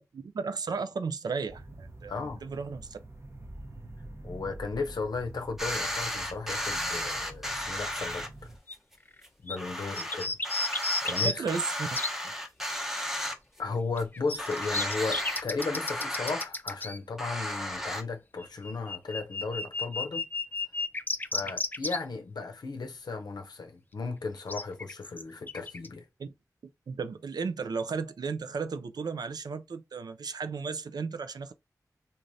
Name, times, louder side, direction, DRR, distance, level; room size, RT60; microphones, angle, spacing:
voice 1, 0.1-3.0 11.1-12.0 26.2-26.3 26.9-31.5, right 5 dB, 80° right, 0.4 m, -34 dB
sound 1, 1.5-8.6, right 1 dB, 40° right, 0.7 m, -46 dB
voice 2, 2.1-2.5 4.2-8.5 9.4-10.4 11.0-11.4 13.6-20.2 21.3-26.1, left 4 dB, 90° left, 0.6 m, -35 dB
sound 2, 5.6-8.3 8.7-8.8 9.2-9.3 9.6-13.7 14.0-14.1 14.4-16.4 17.2-18.0, left 1 dB, 5° right, 0.8 m, -34 dB
sound 3, 8.7-8.8 9.2-9.3 9.5-9.6 10.0-12.1 14.0-17.0 18.4-22.0 24.5-25.9, left 3 dB, 30° left, 0.4 m, -33 dB
3.1 x 2.4 x 2.6 m
wide cardioid pair, 55°, 7 cm